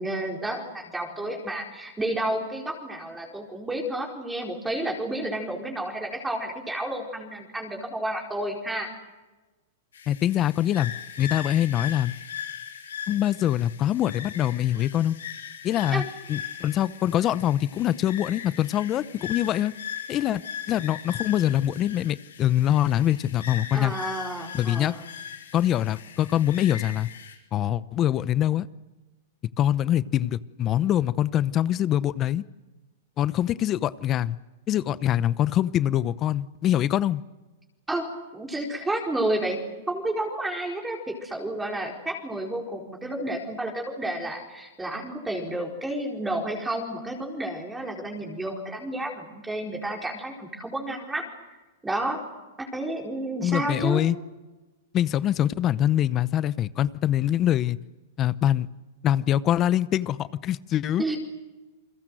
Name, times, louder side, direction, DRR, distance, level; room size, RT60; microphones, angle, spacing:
voice 1, 0.0-8.9 15.9-16.0 23.7-25.0 37.9-38.1 38.3-39.6 39.9-51.2 51.8-52.2 52.6-54.0 61.0-61.2, right 1 dB, 10° right, 0 dB, 4.5 m, -31 dB
sound 1, 9.9-27.4, left 8 dB, 90° left, 6.4 m, -39 dB
voice 2, 10.1-10.9 11.2-12.1 13.1-15.1 15.6-16.0 16.3-19.7 20.1-20.4 20.7-23.9 24.5-24.9 25.5-27.1 27.5-28.7 29.6-32.4 33.2-34.4 34.7-37.2 53.4-54.2 54.9-57.8 58.2-58.7 59.0-61.0, left 11 dB, 30° left, 17 dB, 0.8 m, -24 dB
29.0 x 22.0 x 7.8 m, 1.2 s
hypercardioid pair, 130°, 0 cm